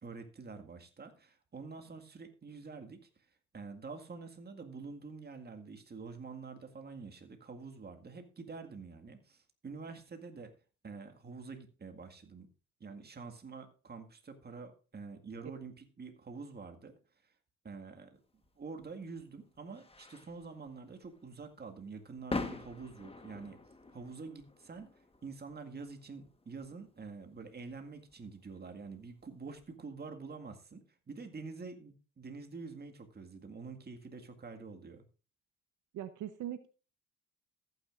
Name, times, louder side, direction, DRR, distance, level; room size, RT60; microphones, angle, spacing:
voice 1, 0.0-3.1 3.5-10.5 10.8-12.5 12.8-16.9 17.6-18.2 18.6-23.6 23.9-24.9 25.2-35.0, right 4 dB, 35° right, 6 dB, 1.9 m, -47 dB
sound 1, 18.4-29.7, left 3 dB, 20° left, 1.4 m, -46 dB
voice 2, 35.9-36.7, right 11 dB, 80° right, 11 dB, 0.9 m, -40 dB
14.0 x 9.2 x 2.5 m, 0.35 s
cardioid pair, 90°, 30 cm